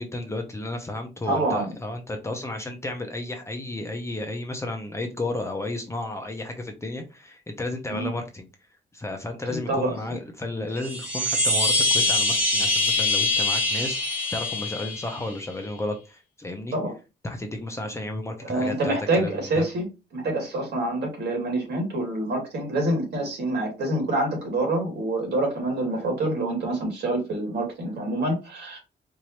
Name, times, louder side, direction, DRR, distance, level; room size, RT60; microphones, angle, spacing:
voice 1, 0.0-8.5 8.9-14.0 14.3-16.7 17.2-19.7, left 2 dB, 15° left, 0.7 m, -33 dB
voice 2, 1.3-1.7 7.9-8.1 9.5-10.0 16.7-16.9 18.4-19.9 20.1-28.8, right 2 dB, 65° right, 2.2 m, -26 dB
Chime, 10.8-15.5, left 2 dB, 5° right, 1.3 m, -24 dB
4.7 x 2.6 x 2.9 m
cardioid pair, 145°, 19 cm